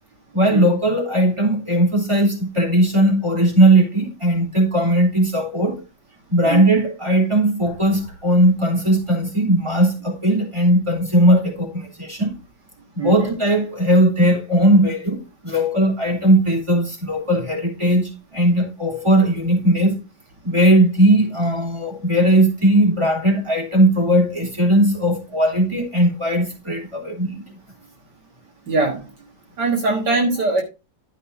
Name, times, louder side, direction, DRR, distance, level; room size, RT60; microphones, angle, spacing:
voice 1, 0.3-5.8 6.3-12.3 13.0-20.0 20.4-27.4, right 1 dB, 15° right, 3.3 m, -18 dB
voice 2, 6.4-6.8 13.0-13.3 28.7-29.1 29.6-30.6, right 3 dB, 65° right, 2.2 m, -21 dB
12.0 x 5.5 x 4.0 m
omnidirectional pair, 2.0 m